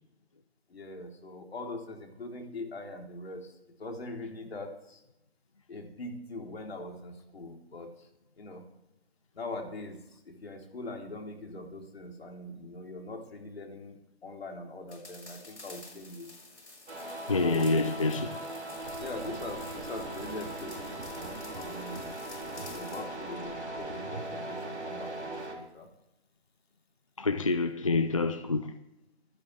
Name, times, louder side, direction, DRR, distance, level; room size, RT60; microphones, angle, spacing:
voice 1, 0.7-3.5 3.8-5.0 5.7-7.9 8.4-8.6 9.4-16.3 17.4-17.9 19.0-22.1 22.7-25.9, left 2 dB, 65° left, 3.7 m, -42 dB
sound 1, 14.9-23.1, left 2 dB, 90° left, 6.1 m, -51 dB
sound 2, 16.9-25.5, right 1 dB, 85° right, 4.1 m, -39 dB
voice 2, 17.3-18.4 27.2-28.7, left 3 dB, 30° left, 0.4 m, -27 dB
sound 3, 18.8-24.4, right 3 dB, 55° right, 3.8 m, -48 dB
25.0 x 11.0 x 3.4 m
figure-of-eight pair, 155°, 33 cm